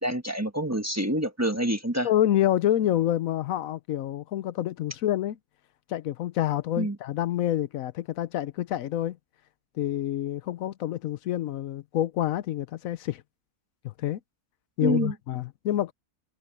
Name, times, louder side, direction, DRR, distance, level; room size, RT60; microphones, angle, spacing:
voice 1, 0.0-2.1 6.8-7.0 14.8-15.1, right 1 dB, 10° right, 1.3 m, -27 dB
voice 2, 2.0-5.4 5.9-9.2 9.8-13.2 13.8-14.2 14.8-15.9, left 12 dB, 80° left, 1.1 m, -27 dB
omnidirectional pair, 1.4 m